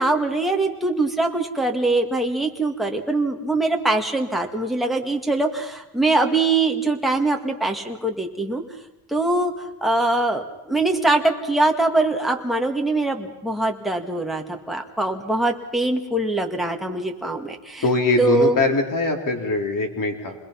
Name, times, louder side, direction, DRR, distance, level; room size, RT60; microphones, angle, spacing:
voice 1, 0.0-8.6 9.1-17.8 18.2-18.6, right 2 dB, ahead, 1 dB, 2.1 m, -22 dB
voice 2, 17.8-20.4, left 3 dB, 40° left, 3 dB, 3.7 m, -22 dB
27.5 x 21.0 x 5.9 m, 0.97 s
cardioid pair, 135°, 49 cm